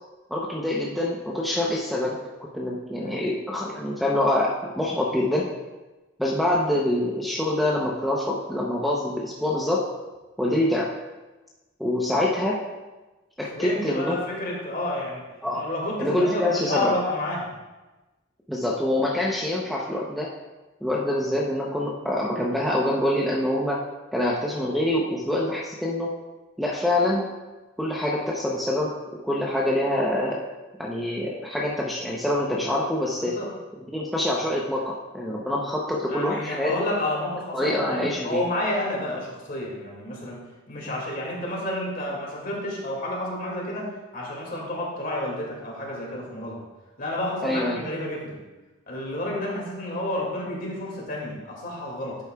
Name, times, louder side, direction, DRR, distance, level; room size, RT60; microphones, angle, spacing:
voice 1, 0.3-2.2 2.5-5.5 6.2-9.8 10.4-10.9 11.8-12.6 13.4-14.2 15.4-15.7 16.0-16.9 18.5-20.3 20.8-23.8 24.1-26.1 26.6-27.3 27.8-28.9 29.2-30.4 30.8-33.4 33.9-36.7 37.5-38.4 47.4-47.8, left 1 dB, ahead, -3 dB, 0.7 m, -25 dB
voice 2, 13.5-15.2 15.5-17.5 33.2-33.5 36.1-40.4 40.7-46.6 47.0-48.4 48.9-52.2, left 1 dB, 45° left, -3 dB, 2.1 m, -30 dB
11.0 x 8.1 x 2.3 m, 1.2 s
head